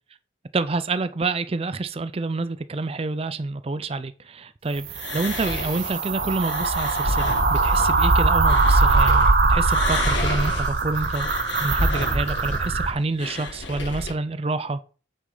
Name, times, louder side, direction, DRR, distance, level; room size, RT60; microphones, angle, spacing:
voice 1, 0.5-11.3 11.6-14.8, right 3 dB, 30° right, 0.4 m, -28 dB
sound 1, 4.8-12.9, right 3 dB, 50° right, 0.9 m, -21 dB
sound 2, 4.9-9.3 9.6-14.1, left 2 dB, 75° left, 2.2 m, -30 dB
8.2 x 6.4 x 3.9 m
head